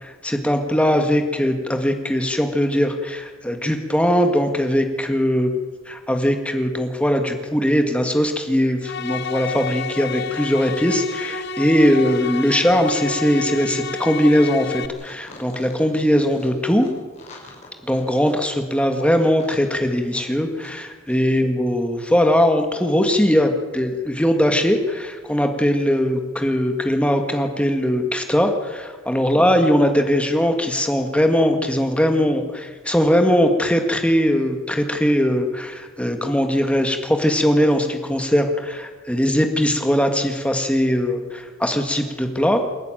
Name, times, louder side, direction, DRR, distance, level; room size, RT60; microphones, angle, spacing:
voice 1, 0.2-5.5 5.8-16.9 17.8-42.6, equal, 5° left, 5 dB, 1.8 m, -20 dB
sound 1, 8.8-14.9, left 5 dB, 50° left, 1.1 m, -30 dB
sound 2, 14.9-20.8 21.0-21.2, left 2 dB, 35° left, 5.7 m, -44 dB
28.0 x 11.5 x 9.1 m, 1.4 s
head